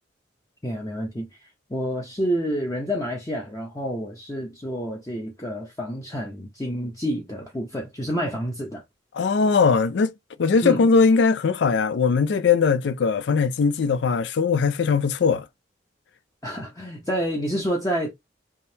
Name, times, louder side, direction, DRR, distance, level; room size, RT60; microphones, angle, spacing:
voice 1, 0.6-8.8 10.6-10.9 16.4-18.1, equal, 20° left, 0.7 m, -29 dB
voice 2, 9.1-10.1 10.4-15.5, left 5 dB, 70° left, 0.4 m, -20 dB
3.6 x 2.8 x 2.7 m
head